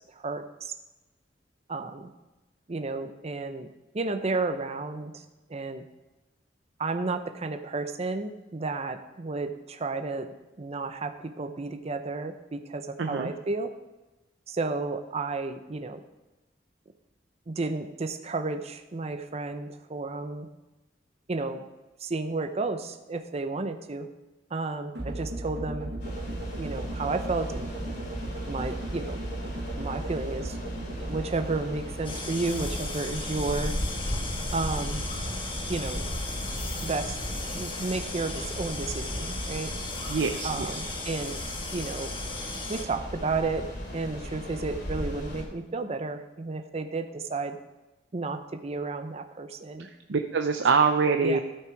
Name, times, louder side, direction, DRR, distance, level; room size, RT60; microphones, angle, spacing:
voice 1, 0.2-0.7 1.7-2.1 2.7-3.7 3.9-5.2 5.5-5.8 6.8-13.7 14.5-16.0 17.5-20.5 21.3-21.6 22.0-24.1 24.5-25.9 26.6-27.7 28.5-29.2 29.8-30.6 31.0-33.8 34.5-35.0 35.7-36.0 36.8-37.2 37.5-39.7 40.4-41.4 41.7-42.2 42.7-47.6 48.1-49.9 51.2-51.4, right 3 dB, 35° right, 7 dB, 0.6 m, -32 dB
voice 2, 13.0-13.3 40.1-40.7 50.1-51.4, right 5 dB, 80° right, 6 dB, 0.6 m, -24 dB
sound 1, 24.9-33.1, right 1 dB, 65° right, 1.6 m, -36 dB
sound 2, 26.0-45.4, equal, 65° left, 2.9 m, -36 dB
sound 3, 32.0-42.8, left 3 dB, 30° left, 1.3 m, -37 dB
13.0 x 5.9 x 4.6 m, 1.1 s
head